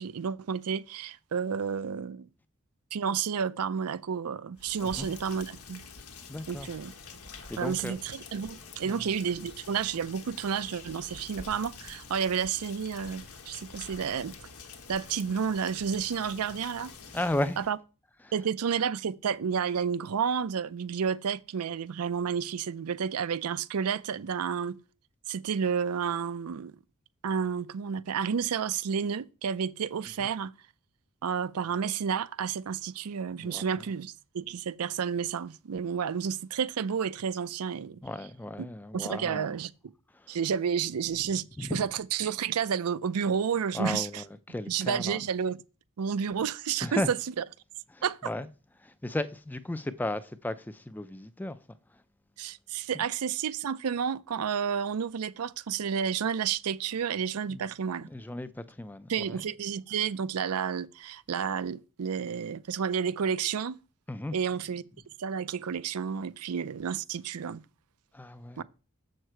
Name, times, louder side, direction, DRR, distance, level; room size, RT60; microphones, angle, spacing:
voice 1, 0.0-2.3 2.9-5.8 6.5-6.9 7.6-14.3 14.9-16.9 17.6-17.8 18.3-24.8 25.3-26.7 27.2-30.5 31.2-38.0 38.9-39.7 40.3-44.2 44.7-45.6 46.0-47.4 48.0-48.2 52.4-58.1 59.1-63.8 64.3-64.8 65.2-67.6 68.6-68.7, right 7 dB, 85° right, 0.5 m, -31 dB
Rain, 4.5-17.7, left 4 dB, 85° left, 1.2 m, -47 dB
voice 2, 6.3-6.7 7.5-8.0 8.8-9.1 17.1-17.6 18.2-18.3 33.4-33.6 38.0-39.6 40.1-40.4 41.6-41.8 43.7-45.2 46.8-47.1 47.9-48.5 48.8-51.6 52.9-53.1 57.5-57.6 58.1-59.4 64.1-64.4 68.1-68.6, left 1 dB, 10° left, 0.4 m, -35 dB
7.4 x 6.5 x 4.5 m
head